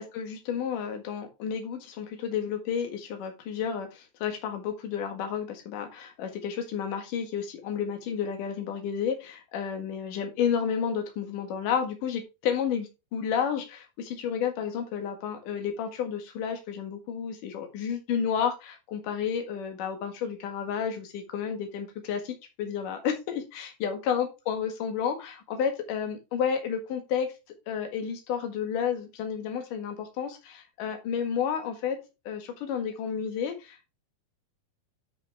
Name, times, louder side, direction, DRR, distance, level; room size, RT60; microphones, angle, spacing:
voice 1, 0.0-27.3 27.7-32.0 32.3-33.9, left 7 dB, 60° left, 5 dB, 3.0 m, -31 dB
8.2 x 6.4 x 3.5 m, 0.26 s
omnidirectional pair, 4.6 m